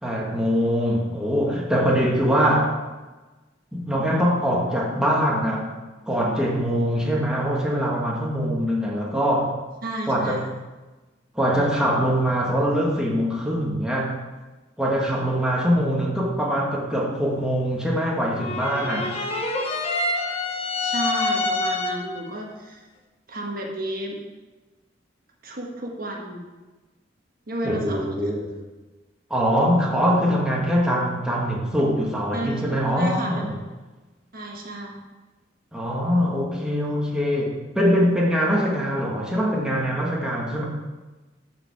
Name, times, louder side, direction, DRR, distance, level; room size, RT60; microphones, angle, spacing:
voice 1, 0.0-2.7 3.7-5.7 6.1-9.6 10.1-10.5 11.3-14.2 14.8-19.1 27.6-28.5 29.3-33.5 35.7-40.6, equal, 5° right, -4 dB, 1.5 m, -23 dB
voice 2, 9.8-10.4 20.8-22.9 23.3-24.2 25.4-26.4 27.5-28.0 32.3-33.5 34.3-35.0, right 1 dB, 50° right, 0 dB, 1.5 m, -32 dB
sound 1, 18.4-22.2, left 2 dB, 35° left, 1.1 m, -26 dB
13.0 x 5.1 x 4.7 m, 1.2 s
head